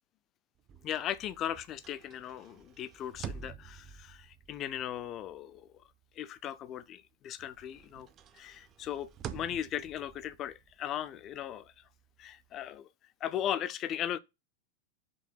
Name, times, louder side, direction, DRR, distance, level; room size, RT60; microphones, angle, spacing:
sound 1, 0.6-7.1 7.4-12.8, right 8 dB, 30° right, 0.6 m, -49 dB
voice 1, 0.8-5.7 6.2-8.1 8.3-11.7 12.2-12.9 13.2-14.2, left 10 dB, 30° left, 0.5 m, -37 dB
5.3 x 3.3 x 5.6 m
figure-of-eight pair, 90°, 0 cm